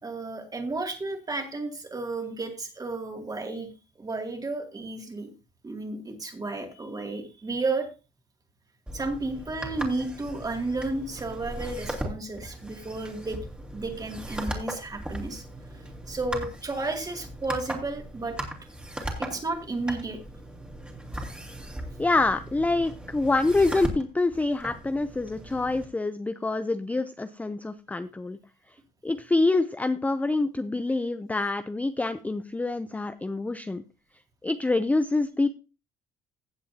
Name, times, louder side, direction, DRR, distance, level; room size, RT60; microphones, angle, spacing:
voice 1, 0.0-3.7 4.0-5.3 5.6-7.9 8.9-13.4 13.7-15.4 15.7-18.4 19.2-20.2, right 3 dB, 20° right, 4 dB, 2.4 m, -32 dB
sound 1, 8.9-25.8, right 1 dB, 5° right, 2.5 m, -38 dB
voice 2, 22.0-28.4 29.0-33.8 34.4-35.5, left 2 dB, 10° left, 11 dB, 0.5 m, -26 dB
16.0 x 7.4 x 2.8 m, 0.30 s
cardioid pair, 110°, 17 cm